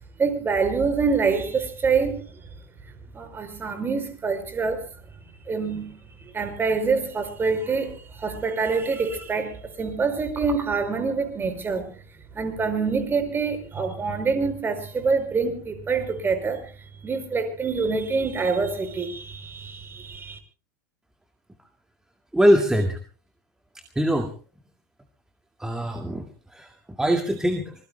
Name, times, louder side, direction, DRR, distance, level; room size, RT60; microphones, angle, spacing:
voice 1, 0.2-2.5 3.1-4.9 5.5-12.0 12.3-16.6 17.0-20.4, right 4 dB, 20° right, 5.5 m, -26 dB
voice 2, 22.3-23.0 24.0-24.3 25.6-26.3 26.5-26.7 27.0-27.7, equal, 5° right, 2.1 m, -22 dB
25.5 x 21.5 x 2.2 m
hypercardioid pair, 90°, 10 cm